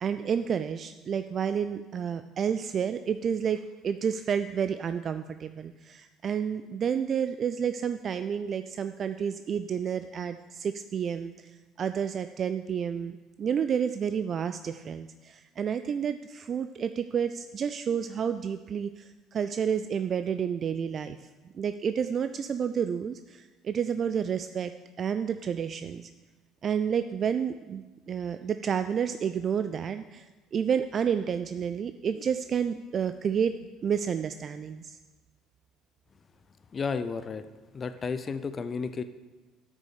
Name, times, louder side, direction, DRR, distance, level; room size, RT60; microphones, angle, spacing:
voice 1, 0.0-11.3 11.8-21.2 21.5-24.7 25.0-26.1 26.6-30.3 30.5-33.5 33.8-35.0, right 7 dB, 45° right, 10 dB, 0.4 m, -30 dB
voice 2, 36.7-37.4 37.7-39.0, left 5 dB, 35° left, 11 dB, 0.6 m, -32 dB
9.2 x 6.2 x 6.6 m, 1.2 s
hypercardioid pair, 60°, 0 cm